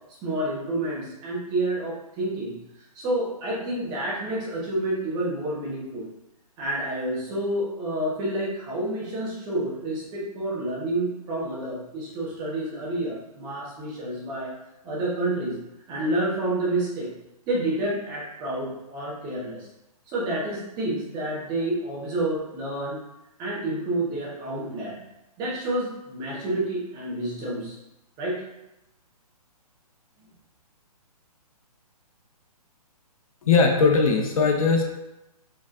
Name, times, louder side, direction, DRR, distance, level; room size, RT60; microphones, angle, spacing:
voice 1, 0.2-6.1 6.6-14.5 14.8-15.6 15.9-17.1 17.5-19.6 20.1-23.0 23.4-25.0 25.4-27.8 28.2-28.4, right 1 dB, 20° right, -5 dB, 1.3 m, -29 dB
voice 2, 33.4-34.8, left 4 dB, 60° left, 2 dB, 0.8 m, -19 dB
5.0 x 3.6 x 2.6 m, 0.91 s
figure-of-eight pair, 135°, 20 cm